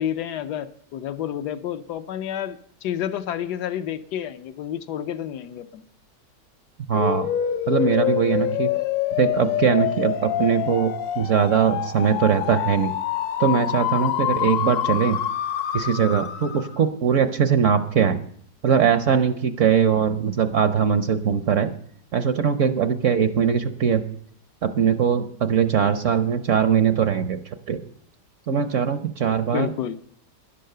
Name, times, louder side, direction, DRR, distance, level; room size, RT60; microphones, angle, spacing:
voice 1, 0.0-5.8 29.5-30.0, left 10 dB, 75° left, 9 dB, 1.3 m, -30 dB
sound 1, 6.9-16.8, left 11 dB, 60° left, 1.1 m, -26 dB
voice 2, 6.9-7.3 7.7-8.7 9.2-12.9 13.4-15.2 15.7-18.2 18.6-21.7 22.1-24.0 24.6-27.4 27.7-27.8 28.5-29.7, right 7 dB, 60° right, 10 dB, 0.8 m, -21 dB
11.5 x 11.0 x 6.6 m, 0.62 s
omnidirectional pair, 1.9 m